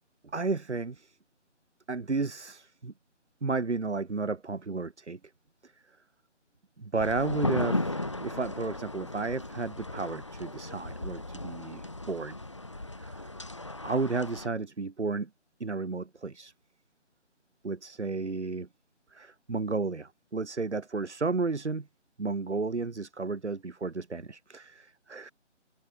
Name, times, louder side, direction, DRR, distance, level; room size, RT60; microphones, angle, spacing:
voice 1, 0.3-1.2 1.9-2.9 3.4-5.2 5.6-5.7 6.8-12.4 13.0-13.3 13.8-15.3 15.6-16.5 17.6-18.7 19.1-21.9 22.2-25.3, right 3 dB, 70° right, 2.8 m, -33 dB
sound 1, 7.0-14.5, left 2 dB, 25° left, 1.1 m, -35 dB
figure-of-eight pair, 180°, 36 cm